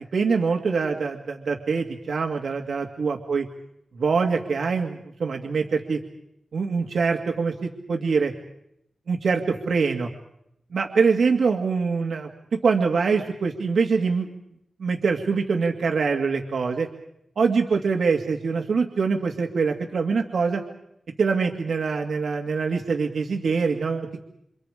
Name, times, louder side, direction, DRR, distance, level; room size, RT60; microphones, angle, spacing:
voice 1, 0.1-3.4 4.0-6.0 6.5-8.3 9.1-10.1 10.7-12.3 12.6-14.3 14.8-16.9 17.4-20.6 21.2-24.2, right 5 dB, 80° right, 3 dB, 2.1 m, -24 dB
29.5 x 27.0 x 5.0 m, 0.80 s
wide cardioid pair, 120°, 0 cm